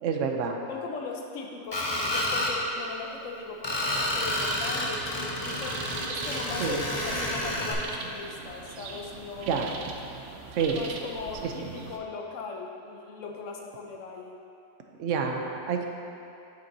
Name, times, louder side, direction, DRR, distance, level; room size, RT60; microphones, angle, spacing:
voice 1, 0.0-0.6 6.6-6.8 9.5-9.7 10.5-10.8 11.4-11.5 15.0-15.9, right 6 dB, 80° right, 3 dB, 1.0 m, -28 dB
voice 2, 0.7-9.7 10.7-14.4, left 4 dB, 85° left, 1 dB, 1.1 m, -39 dB
Screech, 1.7-2.5 3.6-7.7, left 1 dB, 25° left, 0.7 m, -29 dB
sound 1, 3.9-12.0, right 4 dB, 65° right, 0.8 m, -41 dB
8.2 x 6.9 x 2.7 m, 2.8 s
omnidirectional pair, 1.3 m